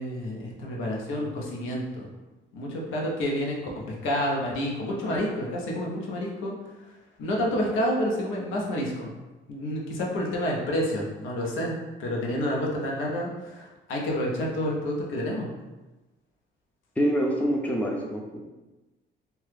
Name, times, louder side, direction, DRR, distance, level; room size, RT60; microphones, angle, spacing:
voice 1, 0.0-2.1 2.5-6.5 7.2-9.1 9.5-11.7 12.0-15.5, equal, 90° left, -2 dB, 0.7 m, -29 dB
voice 2, 17.0-18.4, equal, 5° left, -1 dB, 0.5 m, -26 dB
2.9 x 2.2 x 3.3 m, 1.1 s
cardioid pair, 90°, 20 cm